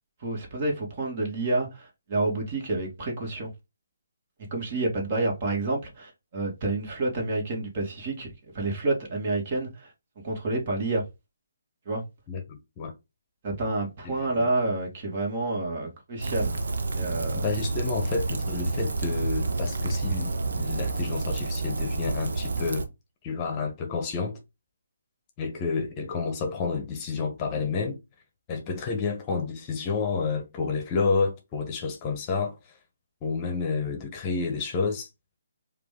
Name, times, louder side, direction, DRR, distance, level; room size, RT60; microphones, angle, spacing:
voice 1, 0.2-3.5 4.5-9.9 10.2-11.0 11.9-12.0 13.4-16.6 16.9-17.5, right 2 dB, 40° right, 2.0 m, -29 dB
voice 2, 12.3-12.9 14.4-14.5 17.3-22.9 23.2-24.4 25.4-28.0 28.5-32.8 33.2-35.1, left 4 dB, 25° left, 0.9 m, -30 dB
Rain, 16.2-22.9, right 3 dB, 65° right, 0.9 m, -29 dB
4.8 x 2.6 x 3.6 m
figure-of-eight pair, 145°, 0 cm